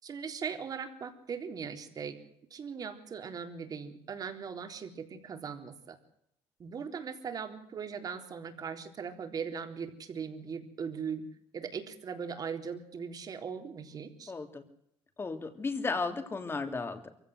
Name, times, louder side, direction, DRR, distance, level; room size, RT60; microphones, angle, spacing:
voice 1, 0.0-2.2 2.5-6.0 6.6-11.2 11.5-14.3, right 6 dB, 45° right, 7 dB, 3.8 m, -39 dB
voice 2, 14.3-14.6 15.2-17.1, left 4 dB, 25° left, 8 dB, 3.3 m, -34 dB
23.5 x 16.0 x 7.9 m, 0.76 s
supercardioid pair, 95°, 9 cm